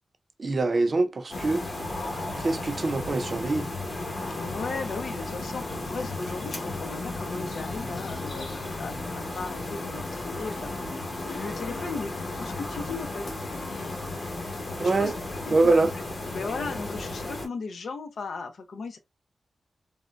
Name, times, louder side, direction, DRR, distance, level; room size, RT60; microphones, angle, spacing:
voice 1, 0.4-1.6 2.3-3.7 14.8-15.1 15.5-15.9, right 3 dB, 45° right, 0.5 m, -24 dB
sound 1, 1.3-17.5, left 2 dB, 50° left, 1.2 m, -34 dB
voice 2, 4.3-10.7 11.2-13.9 14.8-15.8 16.3-19.0, left 4 dB, 85° left, 0.6 m, -37 dB
3.6 x 2.1 x 2.5 m
wide cardioid pair, 115°, 0 cm